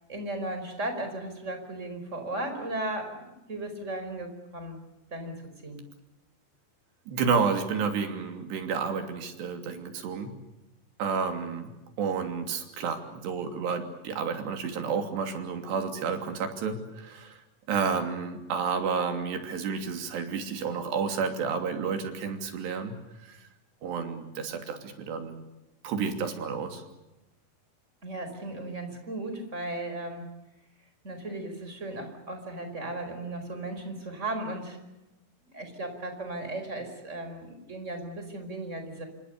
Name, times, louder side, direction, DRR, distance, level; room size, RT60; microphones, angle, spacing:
voice 1, 0.1-4.8 5.1-5.3 5.6-5.8 28.0-30.3 31.0-34.8 35.5-39.0, right 1 dB, 15° right, 7 dB, 5.0 m, -36 dB
voice 2, 7.1-10.3 11.0-11.7 12.0-17.4 17.7-23.0 23.3-23.4 23.8-25.4 25.8-26.8, right 5 dB, 80° right, 6 dB, 5.1 m, -30 dB
28.0 x 25.5 x 6.8 m, 0.96 s
omnidirectional pair, 4.8 m